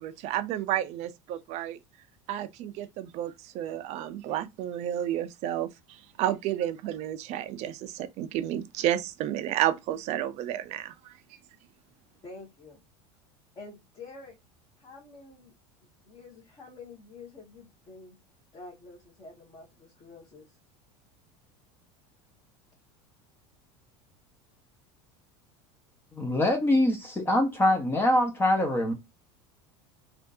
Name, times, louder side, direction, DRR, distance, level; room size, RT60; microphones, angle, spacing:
voice 1, 0.0-1.8 2.3-11.1, right 12 dB, 50° right, 0.5 m, -31 dB
voice 2, 12.2-12.8 13.5-14.4 14.8-15.5 16.0-18.2 18.5-20.6, left 3 dB, 30° left, 1.5 m, -48 dB
voice 3, 26.2-28.9, left 1 dB, 15° left, 0.8 m, -24 dB
3.4 x 2.5 x 2.6 m
supercardioid pair, 125°, 14 cm